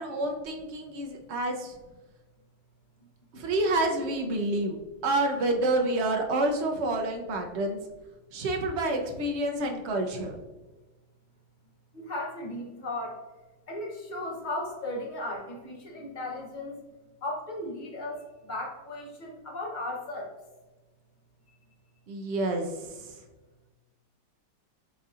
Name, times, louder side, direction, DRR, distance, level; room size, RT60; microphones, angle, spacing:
voice 1, 0.0-1.7 3.3-4.8 5.0-7.8 8.3-10.3 22.1-23.1, right 2 dB, 65° right, 2 dB, 0.6 m, -28 dB
voice 2, 11.9-13.2 13.7-16.8 17.2-18.2 18.5-20.3, left 1 dB, 40° left, -1 dB, 0.7 m, -36 dB
6.5 x 2.7 x 2.4 m, 1.2 s
omnidirectional pair, 1.9 m